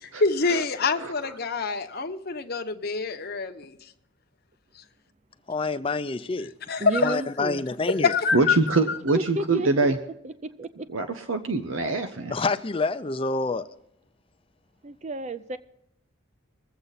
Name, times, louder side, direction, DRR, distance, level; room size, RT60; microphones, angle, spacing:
voice 1, 0.0-3.9 6.7-7.2 7.9-8.6 8.9-9.0, left 4 dB, 50° left, 0.9 m, -26 dB
voice 2, 5.5-6.5 7.0-8.1 12.3-13.7, left 3 dB, 25° left, 0.5 m, -27 dB
voice 3, 6.8-7.6 9.1-9.9 10.2-10.7 14.8-15.6, right 2 dB, 35° right, 0.5 m, -31 dB
voice 4, 8.3-10.0 10.9-12.3, right 3 dB, 80° right, 0.9 m, -24 dB
22.0 x 8.0 x 4.1 m
head